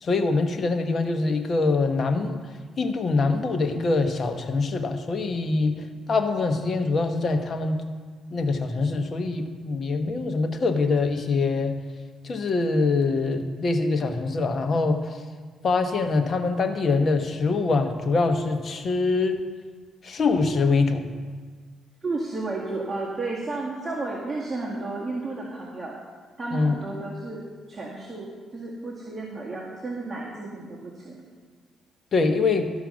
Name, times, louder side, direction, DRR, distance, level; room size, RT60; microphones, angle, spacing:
voice 1, 0.0-2.4 2.8-7.8 8.3-11.8 12.2-15.2 15.6-19.4 20.0-21.1 26.5-26.7 32.1-32.7, left 3 dB, 45° left, 6 dB, 1.1 m, -24 dB
voice 2, 22.0-26.0 26.4-27.4 27.7-31.2, right 2 dB, 25° right, -4 dB, 1.9 m, -32 dB
13.0 x 5.6 x 6.3 m, 1.5 s
cardioid pair, 90°, 0 cm